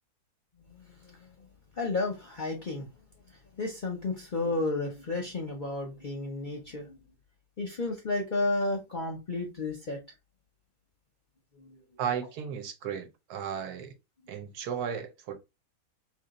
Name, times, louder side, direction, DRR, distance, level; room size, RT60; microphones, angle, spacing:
voice 1, 0.7-1.5 1.7-2.9 3.3-7.0 7.6-10.0 11.5-11.8 14.2-14.3, left 2 dB, 45° left, 0.6 m, -32 dB
voice 2, 12.0-13.9 14.3-15.4, right 8 dB, 85° right, 1.3 m, -34 dB
3.0 x 2.7 x 3.9 m
omnidirectional pair, 1.6 m